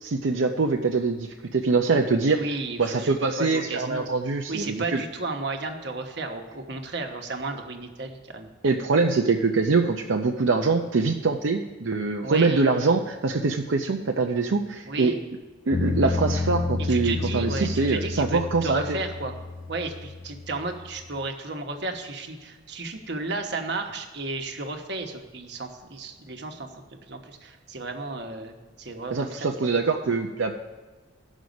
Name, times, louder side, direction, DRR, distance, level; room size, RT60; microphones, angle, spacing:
voice 1, 0.0-2.4 2.8-5.0 8.6-15.1 15.7-19.0 29.1-30.6, right 4 dB, 80° right, 2 dB, 0.6 m, -24 dB
voice 2, 2.4-4.1 4.5-8.5 12.2-12.7 14.8-15.2 16.9-19.3 19.7-29.8, right 3 dB, 60° right, 4 dB, 1.1 m, -33 dB
sound 1, 15.7-21.2, left 3 dB, 45° left, 0.8 m, -30 dB
16.5 x 6.2 x 5.2 m, 1.3 s
head